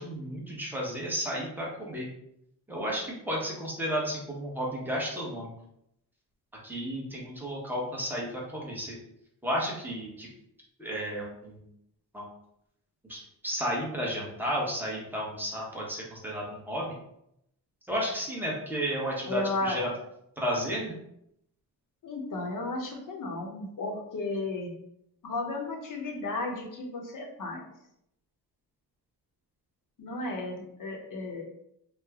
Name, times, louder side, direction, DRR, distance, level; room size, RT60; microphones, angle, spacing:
voice 1, 0.0-2.1 2.7-5.5 6.6-9.0 9.4-10.3 10.8-11.6 12.1-12.3 13.1-17.0 17.9-19.9 20.4-20.9, equal, 5° right, -4 dB, 0.9 m, -32 dB
voice 2, 19.3-19.8 22.0-24.7 25.2-27.7 30.0-31.4, left 2 dB, 50° left, 0 dB, 0.8 m, -34 dB
3.2 x 2.1 x 3.4 m, 0.77 s
wide cardioid pair, 125°, 39 cm